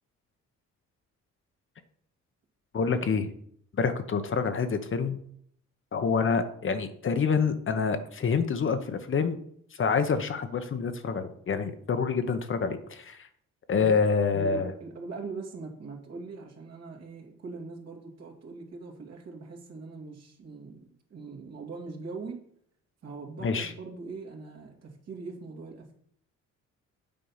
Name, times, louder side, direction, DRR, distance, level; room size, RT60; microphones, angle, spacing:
voice 1, 2.7-3.3 3.8-5.2 5.9-9.4 9.8-13.3 13.7-14.7 23.4-23.7, left 5 dB, 40° left, 0.9 m, -27 dB
voice 2, 14.3-20.8 21.1-22.4 23.0-25.9, right 4 dB, 55° right, 2.4 m, -41 dB
8.7 x 4.5 x 5.6 m
cardioid pair, 90°, 30 cm